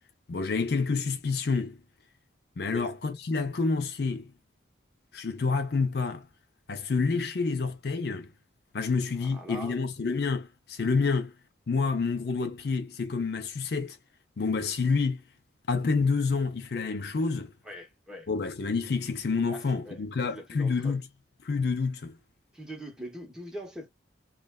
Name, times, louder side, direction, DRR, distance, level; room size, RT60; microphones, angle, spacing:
voice 1, 0.3-1.8 2.6-4.3 5.1-6.3 6.7-8.3 8.7-11.3 11.7-14.0 14.4-15.2 15.7-17.5 18.3-21.0 21.4-22.1, left 4 dB, 55° left, 0.5 m, -28 dB
voice 2, 9.2-9.8 11.1-11.2 17.6-18.3 19.5-20.0 20.3-21.0 22.5-23.9, equal, 5° right, 0.9 m, -42 dB
3.1 x 2.2 x 2.2 m
head